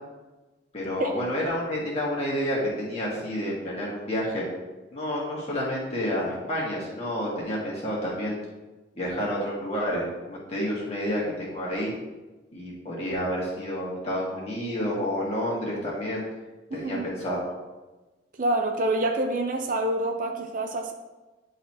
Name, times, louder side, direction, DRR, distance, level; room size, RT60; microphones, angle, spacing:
voice 1, 0.7-4.5 4.9-8.4 9.0-11.9 12.5-16.2 16.7-17.5, equal, 35° left, -5 dB, 1.8 m, -29 dB
voice 2, 16.7-17.1 18.4-20.9, right 1 dB, 45° right, 4 dB, 0.6 m, -27 dB
10.0 x 4.1 x 2.9 m, 1.1 s
head